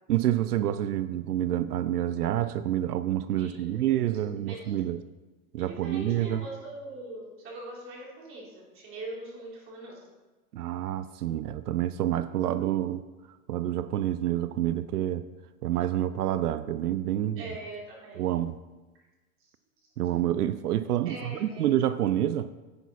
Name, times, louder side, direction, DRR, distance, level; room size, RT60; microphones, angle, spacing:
voice 1, 0.1-5.0 5.5-6.4 10.5-13.0 13.5-15.2 15.6-17.5 18.1-18.6 20.0-22.5, right 12 dB, 90° right, 13 dB, 0.6 m, -28 dB
voice 2, 3.4-4.8 5.7-10.0 17.4-18.2 21.0-21.7, right 2 dB, 30° right, -4 dB, 3.4 m, -42 dB
9.8 x 8.1 x 4.3 m, 1.2 s
hypercardioid pair, 135°, 45 cm